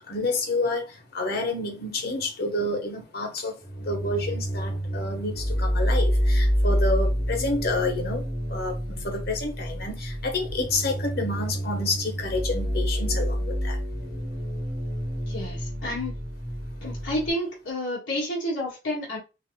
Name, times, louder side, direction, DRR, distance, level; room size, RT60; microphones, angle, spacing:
voice 1, 0.1-13.8, left 2 dB, 55° left, 1.3 m, -29 dB
sound 1, 3.6-17.3, equal, 10° left, 1.2 m, -28 dB
voice 2, 15.3-16.2 16.8-19.2, left 1 dB, 85° left, 1.7 m, -30 dB
6.1 x 2.9 x 2.3 m
head